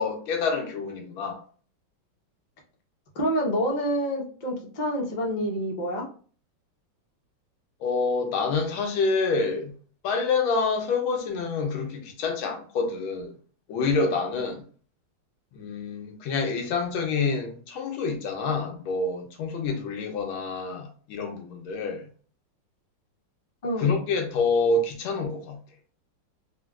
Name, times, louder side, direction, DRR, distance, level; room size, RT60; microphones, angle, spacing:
voice 1, 0.0-1.4 7.8-9.7 10.0-13.3 13.7-14.6 15.5-22.0 23.8-25.6, left 4 dB, 85° left, 1.5 m, -27 dB
voice 2, 3.1-6.0 23.6-24.0, equal, 50° left, 0.5 m, -27 dB
4.2 x 2.3 x 2.3 m
omnidirectional pair, 2.2 m